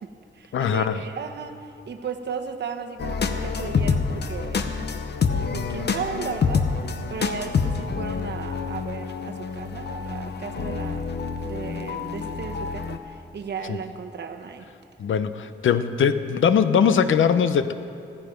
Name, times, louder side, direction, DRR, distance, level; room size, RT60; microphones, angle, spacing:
voice 1, 0.0-4.7 5.3-6.7 7.1-11.1 11.4-14.7, right 6 dB, 60° right, 5 dB, 1.0 m, -35 dB
voice 2, 0.5-1.0 13.7-13.8 15.0-17.7, left 7 dB, 85° left, 11 dB, 0.7 m, -21 dB
sound 1, 3.0-13.0, left 5 dB, 60° left, 0.8 m, -27 dB
16.0 x 14.0 x 5.2 m, 2.6 s
wide cardioid pair, 165°, 20 cm